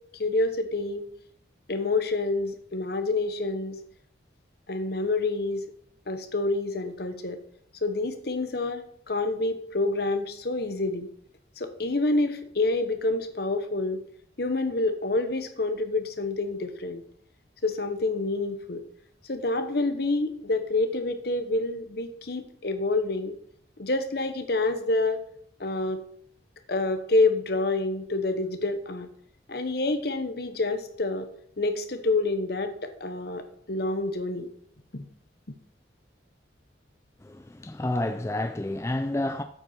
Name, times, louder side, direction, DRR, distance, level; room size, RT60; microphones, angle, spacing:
voice 1, 0.1-1.0 1.7-3.8 4.7-5.6 6.1-7.4 7.8-11.1 11.6-14.0 14.4-17.0 17.6-18.8 19.3-23.3 23.8-25.2 25.6-26.0 26.7-29.1 29.5-31.3 31.6-34.5 34.9-35.0, left 2 dB, 55° left, 1.0 m, -27 dB
voice 2, 37.2-39.4, left 1 dB, 15° left, 0.4 m, -29 dB
8.9 x 7.9 x 4.4 m
head